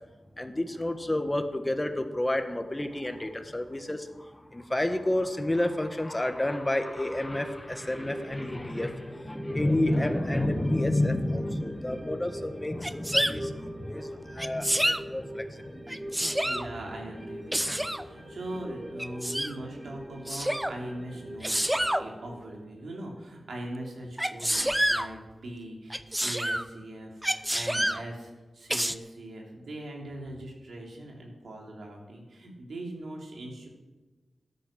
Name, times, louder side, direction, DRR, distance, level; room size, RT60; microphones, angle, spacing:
voice 1, 0.4-15.8, left 1 dB, 25° left, 7 dB, 1.6 m, -30 dB
sound 1, 6.8-23.6 23.9-24.0, equal, 30° right, 2.4 m, -43 dB
Sneeze, 12.8-13.3 14.4-15.0 15.9-16.7 17.5-18.0 19.0-19.5 20.3-20.7 21.4-22.0 24.2-25.1 25.9-26.7 27.2-28.0 28.7-28.9, equal, 10° right, 0.8 m, -27 dB
voice 2, 16.4-33.7, right 1 dB, 85° right, 0 dB, 3.3 m, -41 dB
13.0 x 10.5 x 7.5 m, 1.2 s
cardioid pair, 40°, 0 cm